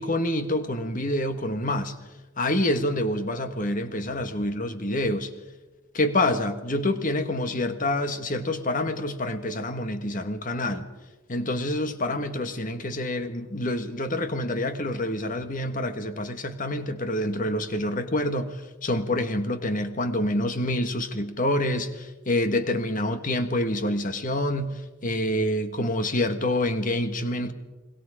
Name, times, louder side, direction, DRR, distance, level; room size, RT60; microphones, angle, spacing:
voice 1, 0.0-1.9 2.4-5.3 5.9-10.9 11.3-27.5, left 1 dB, 40° left, 1.6 m, -27 dB
30.0 x 21.5 x 5.0 m
head